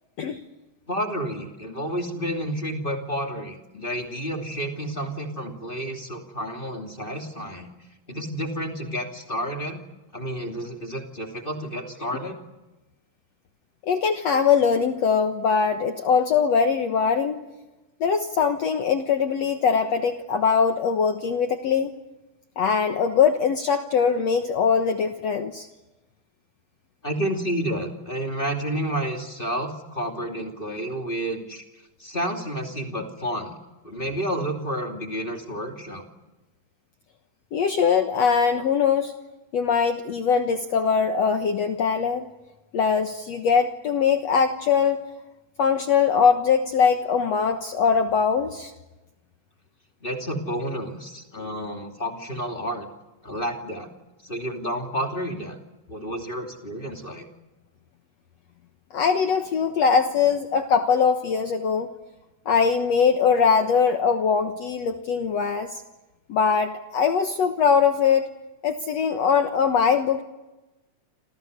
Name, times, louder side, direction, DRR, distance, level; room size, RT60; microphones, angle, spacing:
voice 1, 0.9-7.7 8.1-9.8 10.1-12.4 27.0-31.6 32.0-33.5 33.8-36.0 50.0-52.9 53.2-53.9 54.2-55.6 55.9-57.3, equal, 15° left, 3 dB, 2.4 m, -30 dB
voice 2, 13.9-17.4 18.0-21.9 22.6-25.7 37.5-39.1 39.5-42.3 42.7-45.1 45.6-48.7 58.9-61.9 62.5-65.7 66.3-68.3 68.6-70.2, left 6 dB, 60° left, 6 dB, 1.9 m, -21 dB
28.5 x 27.5 x 6.7 m, 1.1 s
omnidirectional pair, 4.2 m